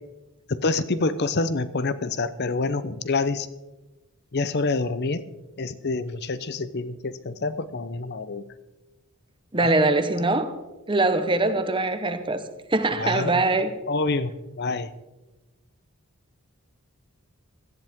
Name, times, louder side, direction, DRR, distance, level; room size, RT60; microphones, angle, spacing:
voice 1, 0.5-3.5 4.3-5.2 5.6-8.5 9.6-9.7 13.0-13.4 13.9-14.9, left 3 dB, 45° left, 14 dB, 0.7 m, -27 dB
voice 2, 9.5-10.5 10.9-12.4 12.7-13.7, right 2 dB, 20° right, 9 dB, 1.0 m, -22 dB
17.5 x 13.5 x 3.6 m, 1.1 s
head